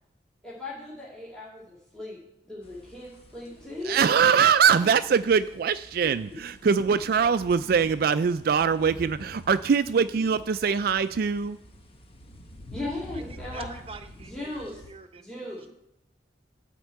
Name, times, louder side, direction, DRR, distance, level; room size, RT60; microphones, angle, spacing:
voice 1, 0.4-4.9 6.0-6.4 7.6-7.8 12.7-13.7 14.3-14.9 15.2-15.7, left 2 dB, 5° left, -6 dB, 2.4 m, -38 dB
sound 1, 2.6-14.9, equal, 30° left, 1.1 m, -48 dB
voice 2, 3.8-11.6, right 6 dB, 55° right, 12 dB, 0.4 m, -22 dB
voice 3, 13.1-15.7, right 3 dB, 35° right, 8 dB, 1.0 m, -46 dB
13.5 x 4.5 x 8.3 m, 0.83 s
head